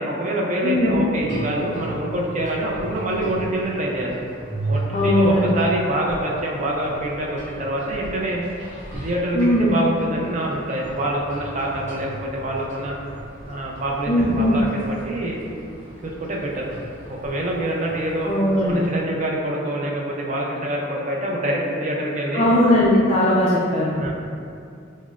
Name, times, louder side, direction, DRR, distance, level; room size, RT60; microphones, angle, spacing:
voice 1, 0.0-4.2 4.7-8.4 9.0-12.9 13.5-15.4 16.0-16.7 17.1-18.3 18.7-22.6 23.9-24.1, right 1 dB, 35° right, -2 dB, 0.4 m, -25 dB
voice 2, 0.6-1.0 4.9-5.6 9.3-9.7 14.1-14.6 18.2-18.9 22.3-24.1, left 1 dB, 30° left, -7 dB, 0.3 m, -19 dB
sound 1, 1.1-19.0, right 1 dB, 15° right, 1.2 m, -35 dB
5.8 x 2.1 x 2.4 m, 2.4 s
head